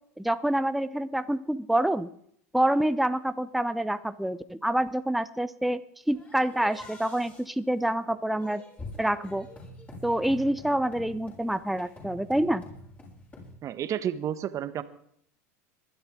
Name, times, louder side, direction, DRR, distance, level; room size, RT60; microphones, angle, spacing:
voice 1, 0.2-2.1 2.5-5.8 6.1-8.6 9.0-9.5 10.0-12.6, right 1 dB, ahead, 12 dB, 0.7 m, -27 dB
sound 1, 6.1-13.5, left 1 dB, 20° left, 7.0 m, -46 dB
voice 2, 13.6-14.8, right 10 dB, 40° right, 12 dB, 1.3 m, -31 dB
22.0 x 12.0 x 3.8 m, 0.67 s
hypercardioid pair, 95°, 8 cm